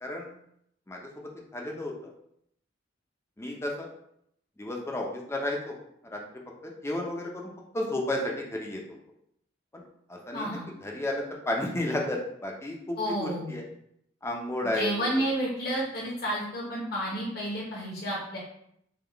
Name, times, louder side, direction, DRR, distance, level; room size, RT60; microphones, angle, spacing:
voice 1, 0.0-0.4 0.9-1.0 1.5-2.1 3.4-3.9 4.6-5.8 6.1-6.2 6.6-8.8 9.7-9.8 10.1-13.6 14.2-15.1 16.8-17.0, left 1 dB, 15° left, 0 dB, 0.5 m, -32 dB
voice 2, 10.3-10.7 13.0-13.6 14.7-18.4, equal, 55° left, -5 dB, 0.9 m, -31 dB
3.7 x 2.3 x 3.4 m, 0.73 s
head